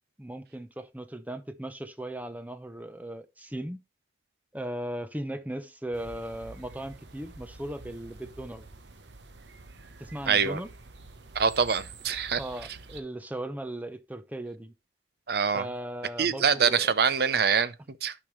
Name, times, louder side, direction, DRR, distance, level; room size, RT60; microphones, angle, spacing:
voice 1, 0.2-3.8 4.5-8.7 10.0-10.7 12.4-14.7 15.5-16.9, right 1 dB, 10° right, 0.7 m, -37 dB
sound 1, 5.9-13.0, right 4 dB, 80° right, 1.0 m, -47 dB
voice 2, 10.3-10.6 11.3-12.4 15.3-15.7 16.2-18.1, right 6 dB, 60° right, 0.6 m, -25 dB
12.0 x 5.2 x 3.2 m
head